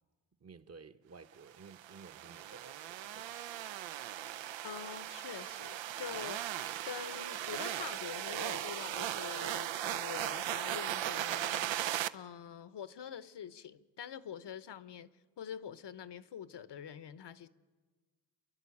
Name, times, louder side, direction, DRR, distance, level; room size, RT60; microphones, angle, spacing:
voice 1, 0.4-3.4, right 4 dB, 35° right, 1.1 m, -54 dB
sound 1, 1.6-12.1, right 12 dB, 75° right, 0.7 m, -38 dB
voice 2, 4.6-6.4 6.9-11.7 12.1-15.1 15.4-17.5, left 8 dB, 65° left, 1.0 m, -45 dB
30.0 x 11.0 x 8.5 m
cardioid pair, 70°, 45 cm